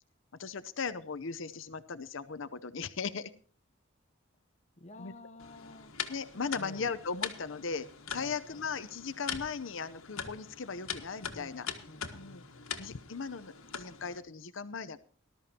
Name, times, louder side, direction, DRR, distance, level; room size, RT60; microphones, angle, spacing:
voice 1, 0.4-3.3 5.0-5.1 6.1-11.7 12.1-12.4 12.8-15.0, left 5 dB, 65° left, 13 dB, 0.7 m, -38 dB
voice 2, 4.8-5.9 6.6-7.0 8.2-8.9 11.3-13.0, left 2 dB, 35° left, 8 dB, 0.9 m, -52 dB
sound 1, 5.4-14.2, left 7 dB, 90° left, 1.6 m, -42 dB
19.0 x 13.0 x 2.9 m, 0.44 s
head